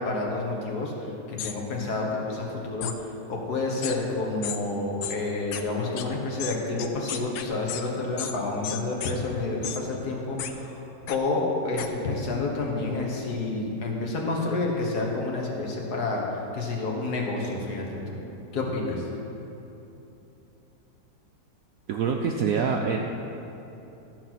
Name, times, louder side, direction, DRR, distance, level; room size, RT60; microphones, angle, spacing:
voice 1, 0.0-10.7 11.1-18.2 18.5-19.0, left 2 dB, 60° left, -1 dB, 1.8 m, -29 dB
sound 1, 1.4-1.5 2.8-3.0 3.8-4.0 4.4-4.6 5.0-5.2 5.5-5.6 6.0-6.1 6.4-7.8 8.2-8.3 8.6-9.1 9.6-9.8 10.4-10.5 11.1-11.2 11.8-11.9, left 9 dB, 90° left, 1.3 m, -33 dB
voice 2, 21.9-23.0, right 6 dB, 70° right, 2 dB, 0.8 m, -25 dB
13.5 x 4.7 x 5.9 m, 3.0 s
omnidirectional pair, 1.9 m